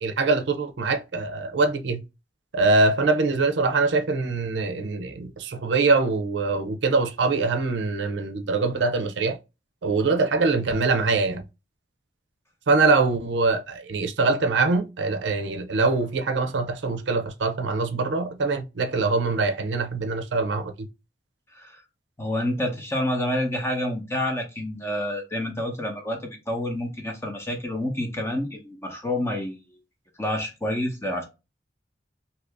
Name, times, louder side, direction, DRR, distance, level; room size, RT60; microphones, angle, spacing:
voice 1, 0.0-2.0 2.5-9.4 9.8-11.4 12.7-20.7, right 3 dB, 85° right, 0.5 m, -23 dB
voice 2, 21.5-21.8 22.2-29.6 30.2-31.2, left 1 dB, 15° left, 0.7 m, -28 dB
2.8 x 2.6 x 3.2 m
head